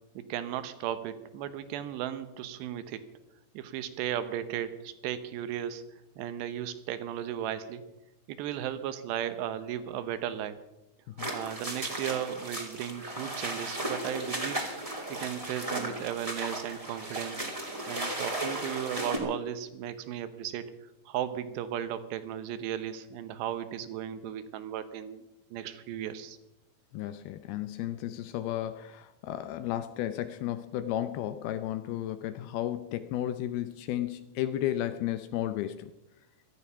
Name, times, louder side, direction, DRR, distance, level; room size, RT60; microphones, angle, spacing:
voice 1, 0.2-3.0 3.5-5.8 6.2-7.8 8.3-10.6 11.3-14.7 15.1-17.5 17.9-20.7 21.1-25.2 25.5-26.4, right 10 dB, 80° right, 11 dB, 3.1 m, -35 dB
sound 1, 11.2-19.2, right 1 dB, 10° right, 1.7 m, -35 dB
voice 2, 26.9-35.9, left 12 dB, 80° left, 11 dB, 2.4 m, -33 dB
17.0 x 13.0 x 5.6 m, 0.95 s
omnidirectional pair, 4.9 m